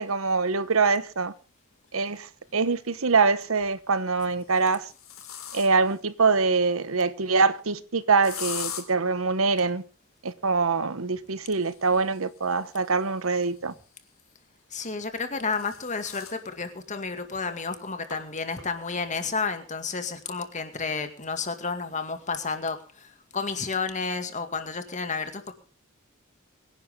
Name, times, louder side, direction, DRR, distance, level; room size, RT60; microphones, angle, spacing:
voice 1, 0.0-1.3 1.9-4.9 5.5-9.8 10.2-13.7, right 4 dB, 75° right, 1.0 m, -24 dB
sound 1, 1.8-1.9 3.4-3.8 4.4-6.0 8.2-8.8 11.4-14.1 15.1-16.4 16.9-17.0 17.3-17.4 18.1-18.2 18.6-19.0, left 8 dB, 70° left, 3.7 m, -41 dB
voice 2, 14.7-23.1 23.3-25.5, left 4 dB, 35° left, 2.1 m, -31 dB
24.0 x 10.5 x 3.7 m
head